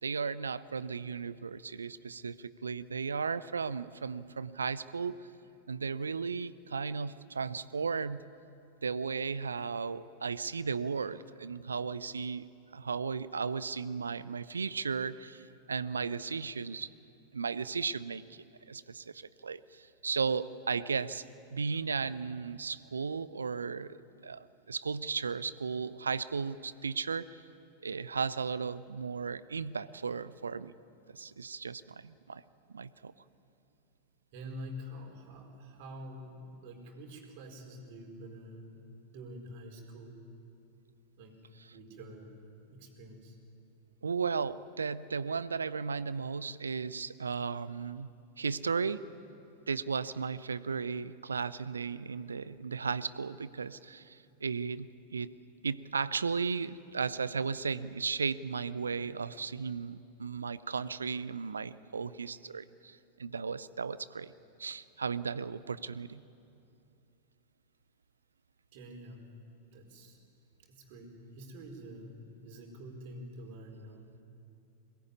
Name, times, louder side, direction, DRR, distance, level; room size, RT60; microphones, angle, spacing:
voice 1, 0.0-5.3 5.7-8.2 8.8-16.9 17.3-21.2 21.5-27.4 27.8-30.7 31.1-32.4 32.7-33.1 44.0-48.1 48.4-49.0 49.7-55.3 55.6-64.3 64.6-66.2, right 5 dB, 75° right, 17 dB, 0.6 m, -35 dB
voice 2, 34.3-40.2 41.2-43.4 68.7-69.3 69.7-70.2 70.6-74.2, equal, 50° right, 3 dB, 4.5 m, -47 dB
22.0 x 19.0 x 9.6 m, 2.7 s
figure-of-eight pair, 90°, 0 cm